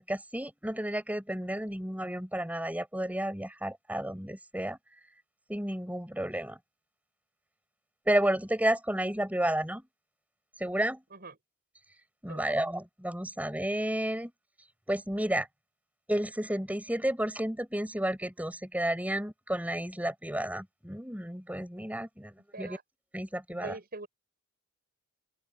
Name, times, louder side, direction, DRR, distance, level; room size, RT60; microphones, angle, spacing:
voice 1, 0.0-4.8 5.5-6.6 8.1-9.8 10.6-11.0 12.2-14.3 14.9-15.5 16.1-22.8 23.1-23.7, right 1 dB, 5° right, 7.4 m, -31 dB
voice 2, 23.5-24.1, right 3 dB, 45° right, 6.7 m, -43 dB
open air
head